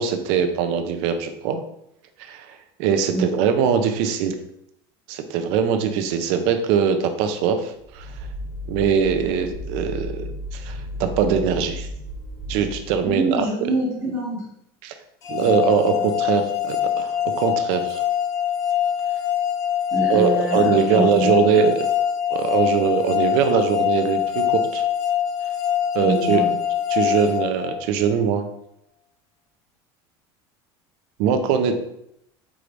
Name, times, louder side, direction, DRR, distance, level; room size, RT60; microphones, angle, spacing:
voice 1, 0.0-1.6 2.2-4.4 5.1-8.2 8.7-11.9 12.5-13.4 14.8-14.9 15.3-18.0 20.1-21.7 22.3-24.9 25.9-26.4 26.9-28.5 31.2-31.8, right 7 dB, 55° right, 8 dB, 0.5 m, -22 dB
sound 1, 7.7-13.2, left 1 dB, 15° left, 1.5 m, -34 dB
voice 2, 13.0-14.5 15.4-15.5 15.9-16.1 19.9-21.6 26.0-26.5, right 2 dB, 25° right, -8 dB, 1.4 m, -26 dB
sound 2, 15.2-28.2, left 9 dB, 30° left, 0.4 m, -24 dB
4.7 x 3.1 x 2.5 m, 0.76 s
cardioid pair, 175°, 11 cm